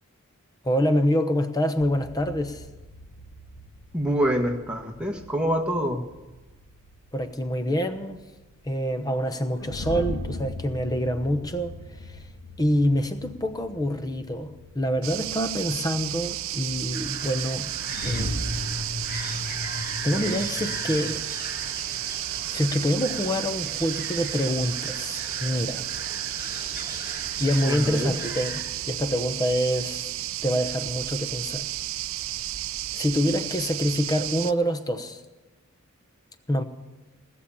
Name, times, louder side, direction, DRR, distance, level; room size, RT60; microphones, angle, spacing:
voice 1, 0.6-2.6 7.1-8.2 8.6-11.7 12.0-12.2 12.6-17.7 18.0-18.5 20.0-21.2 22.5-25.8 27.4-30.1 30.4-31.7 32.9-35.2 36.5-36.6, equal, 20° left, 0.9 m, -26 dB
sound 1, 1.8-21.2, left 1 dB, 85° left, 1.4 m, -39 dB
voice 2, 3.9-6.0 27.7-28.1, equal, 5° right, 1.4 m, -26 dB
sound 2, 15.0-34.5, right 14 dB, 65° right, 0.4 m, -32 dB
sound 3, 16.9-28.6, left 1 dB, 50° left, 5.3 m, -39 dB
18.0 x 7.1 x 9.9 m
head